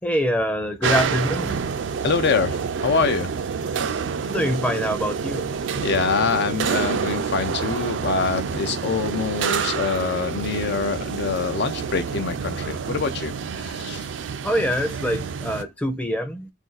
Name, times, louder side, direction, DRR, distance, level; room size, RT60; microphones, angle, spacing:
voice 1, 0.0-1.6 4.3-5.5 14.4-16.5, equal, 5° left, 0.5 m, -24 dB
sound 1, 0.8-15.6, right 6 dB, 70° right, 0.4 m, -28 dB
voice 2, 2.0-3.3 5.8-13.3 13.6-14.1, left 5 dB, 60° left, 0.4 m, -25 dB
2.6 x 2.4 x 3.9 m
head